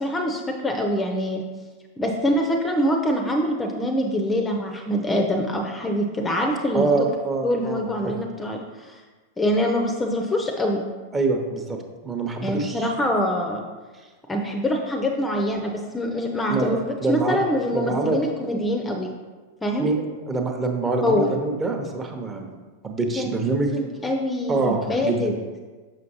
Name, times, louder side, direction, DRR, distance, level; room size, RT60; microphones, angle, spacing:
voice 1, 0.0-1.4 2.0-7.1 7.4-9.0 9.4-10.8 12.4-13.7 14.3-16.8 17.1-19.1 19.6-19.9 21.0-21.3 23.2-25.3, left 1 dB, 15° left, 2 dB, 0.6 m, -24 dB
voice 2, 6.7-8.1 11.1-12.9 16.5-17.4 17.7-18.2 19.8-22.5 22.8-23.7 24.5-25.2, right 3 dB, 20° right, 3 dB, 0.9 m, -25 dB
6.3 x 6.1 x 2.9 m, 1.3 s
figure-of-eight pair, 90°, 0 cm